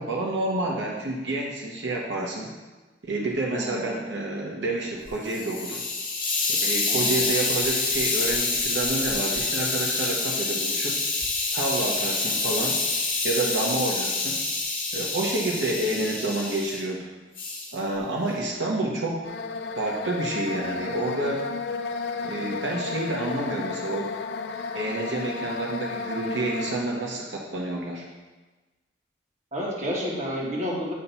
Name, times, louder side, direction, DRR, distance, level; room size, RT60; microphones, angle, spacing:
voice 1, 0.0-2.5 3.0-5.8 6.6-11.0 11.5-12.8 13.2-14.4 14.9-17.0 17.7-19.2 19.7-21.4 22.2-24.1 24.7-28.1, right 2 dB, 90° right, -2 dB, 0.9 m, -29 dB
voice 2, 3.5-3.9 6.9-7.3 29.5-30.9, equal, 40° right, -5 dB, 1.5 m, -30 dB
Hiss, 5.1-16.8 17.4-17.7, left 3 dB, 30° left, 1.5 m, -27 dB
sound 1, 19.2-26.8, left 4 dB, 65° left, 0.4 m, -33 dB
8.6 x 2.9 x 5.5 m, 1.2 s
head